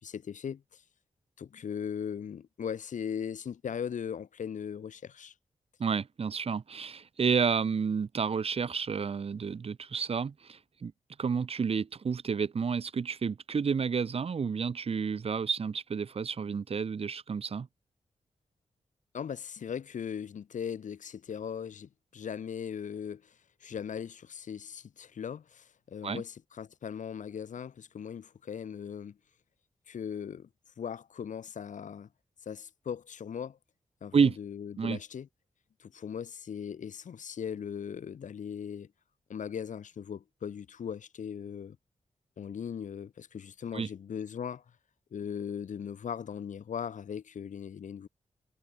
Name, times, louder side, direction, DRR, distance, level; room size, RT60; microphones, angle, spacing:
voice 1, 0.0-0.8 1.4-5.3 19.1-23.3 23.6-29.2 29.9-30.5 30.8-32.1 32.4-33.6 34.0-35.3 35.8-38.9 39.3-41.8 42.4-44.6 45.1-48.1, left 7 dB, 90° left, 3.0 m, -39 dB
voice 2, 5.8-10.9 11.2-17.7 26.0-26.2 34.1-34.4 34.8-35.0 43.7-43.9, right 6 dB, 50° right, 4.6 m, -30 dB
wide cardioid pair, 175°, 13 cm